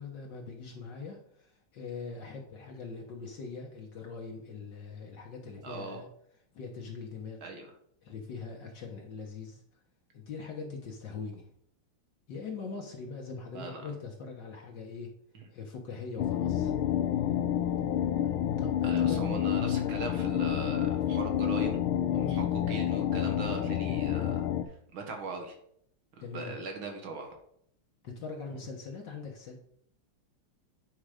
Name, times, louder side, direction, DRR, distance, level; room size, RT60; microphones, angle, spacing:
voice 1, 0.0-6.1 6.5-7.4 8.0-9.6 10.1-11.5 12.3-15.1 15.5-16.7 18.2-19.4 22.2-22.4 26.2-26.6 28.0-29.6, left 4 dB, 60° left, 1 dB, 1.7 m, -42 dB
voice 2, 5.6-6.0 7.4-7.7 13.5-13.8 15.3-15.4 18.8-21.8 22.1-24.5 24.9-25.6 26.3-27.3, right 3 dB, 70° right, 3 dB, 2.2 m, -39 dB
sound 1, 16.2-24.6, left 10 dB, 80° left, 1.5 m, -29 dB
8.9 x 4.7 x 4.9 m, 0.68 s
omnidirectional pair, 2.3 m